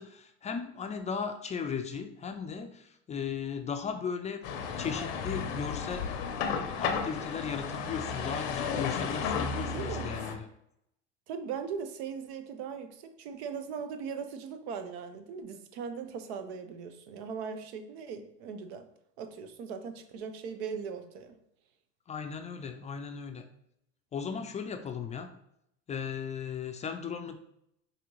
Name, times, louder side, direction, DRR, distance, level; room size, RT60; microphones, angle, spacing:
voice 1, 0.0-4.4 4.8-6.1 6.5-10.5 22.1-23.4 24.1-25.3 25.9-27.4, left 6 dB, 20° left, 6 dB, 0.4 m, -36 dB
sound 1, 4.4-10.3, left 6 dB, 85° left, 0.7 m, -33 dB
voice 2, 9.7-10.2 11.3-18.9 19.2-21.4, right 6 dB, 80° right, 9 dB, 0.6 m, -39 dB
5.0 x 2.7 x 3.0 m, 0.77 s
supercardioid pair, 100°, 32 cm